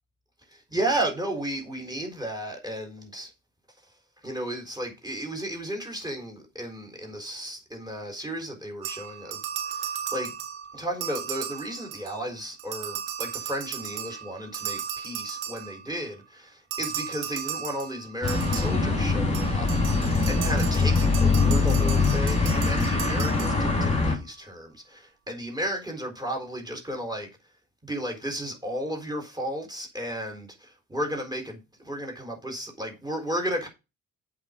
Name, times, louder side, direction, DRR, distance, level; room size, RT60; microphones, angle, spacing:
voice 1, 0.5-3.3 4.2-10.3 10.7-20.0 20.3-27.3 27.8-31.6 31.9-33.7, right 1 dB, 10° right, 3.9 m, -34 dB
sound 1, 8.8-12.3 12.6-16.0 16.7-24.0, right 9 dB, 80° right, 1.4 m, -36 dB
sound 2, 18.2-24.1, left 4 dB, 15° left, 3.5 m, -23 dB
8.1 x 5.5 x 5.2 m
hypercardioid pair, 50°, 45 cm